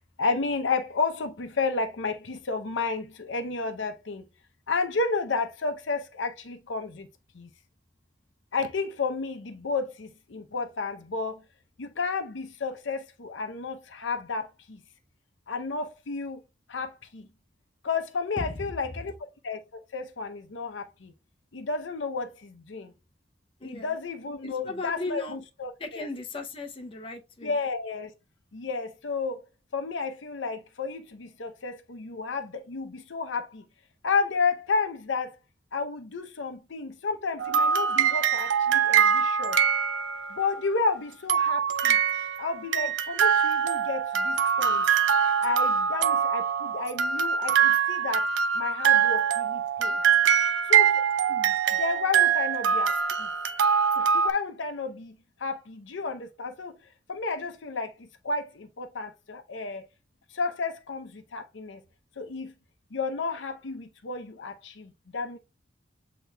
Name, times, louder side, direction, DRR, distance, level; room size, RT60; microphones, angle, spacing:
voice 1, 0.2-4.3 4.7-7.1 7.3-7.5 8.5-11.4 11.8-14.8 15.5-16.4 16.7-17.3 17.8-19.1 19.4-21.1 21.5-22.9 23.6-26.1 27.4-28.1 28.5-29.4 29.7-33.6 34.0-35.4 35.7-39.6 40.3-42.0 42.4-44.9 45.4-48.3 48.5-50.0 50.6-52.9 53.2-53.3 54.0-56.8 57.1-59.9 60.3-61.8 62.2-62.5 62.9-65.4, left 4 dB, 80° left, 0.7 m, -32 dB
voice 2, 18.4-18.7 23.6-24.0 24.4-25.4 25.8-27.6, left 2 dB, 30° left, 0.6 m, -36 dB
sound 1, 37.4-40.5 41.3-54.3, right 7 dB, 75° right, 0.4 m, -23 dB
8.0 x 2.9 x 2.2 m
head